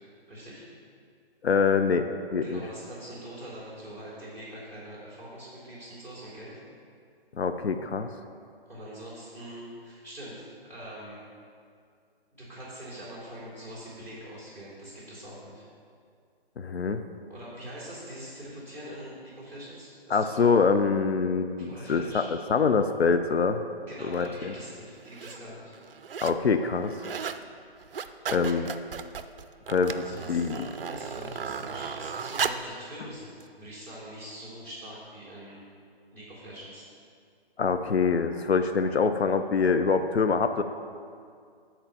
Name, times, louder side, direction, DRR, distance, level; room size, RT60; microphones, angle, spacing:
voice 1, 0.3-0.6 2.4-6.5 8.6-10.4 10.6-11.2 12.3-15.6 17.3-20.5 21.6-22.3 23.9-25.7 28.4-28.6 29.8-33.3 33.6-35.6 36.1-36.8, equal, 5° left, -7 dB, 2.2 m, -43 dB
voice 2, 1.4-2.6 7.4-8.1 16.6-17.0 20.1-23.6 24.1-24.5 26.2-27.0 28.3-28.7 29.7-30.0 30.3-30.6 37.6-40.6, left 5 dB, 85° left, 8 dB, 0.5 m, -25 dB
sound 1, 24.1-24.3 25.0-25.4 25.7-26.4 26.7-27.4 27.8-32.7 33.4-33.5, right 6 dB, 65° right, 0.4 m, -35 dB
7.4 x 4.4 x 6.6 m, 2.2 s
figure-of-eight pair, 135°, 31 cm